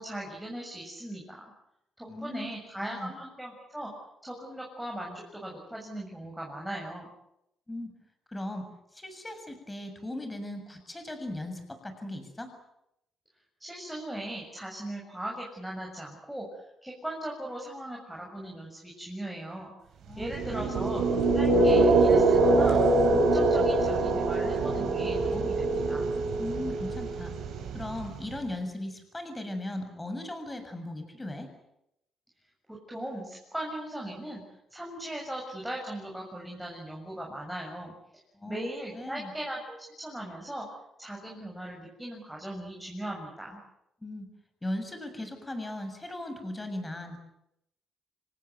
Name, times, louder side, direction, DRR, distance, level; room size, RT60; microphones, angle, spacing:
voice 1, 0.0-1.5 2.0-3.9 4.2-7.1 13.6-19.7 20.2-21.0 21.3-22.8 23.1-26.1 32.7-34.4 34.7-37.9 38.5-39.6 40.0-40.7 41.0-43.6, right 1 dB, 5° right, -2 dB, 7.1 m, -38 dB
voice 2, 2.1-2.5 2.8-3.1 7.7-7.9 8.3-12.5 20.1-20.9 26.4-27.3 27.7-31.5 38.3-38.7 38.9-39.3 44.0-44.3 44.6-47.2, left 1 dB, 15° left, 7 dB, 7.3 m, -38 dB
sound 1, 20.2-28.3, right 2 dB, 70° right, 6.5 m, -24 dB
26.5 x 19.0 x 9.4 m, 0.82 s
cardioid pair, 90°, 0 cm